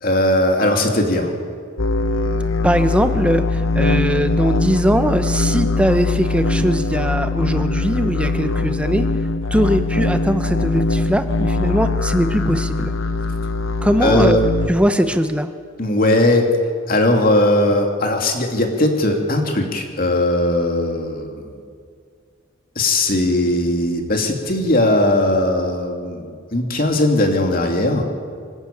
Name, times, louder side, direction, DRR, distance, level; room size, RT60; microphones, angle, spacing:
voice 1, 0.0-1.3 14.0-14.4 15.8-16.5 16.9-21.5 22.8-28.1, left 1 dB, 45° left, 3 dB, 2.6 m, -18 dB
sound 1, 1.8-14.7, left 3 dB, 75° left, 1.0 m, -21 dB
voice 2, 2.6-9.1 9.5-12.9 13.8-14.4 14.7-15.5, equal, 5° right, 9 dB, 0.9 m, -20 dB
26.5 x 12.5 x 8.6 m, 2.2 s
head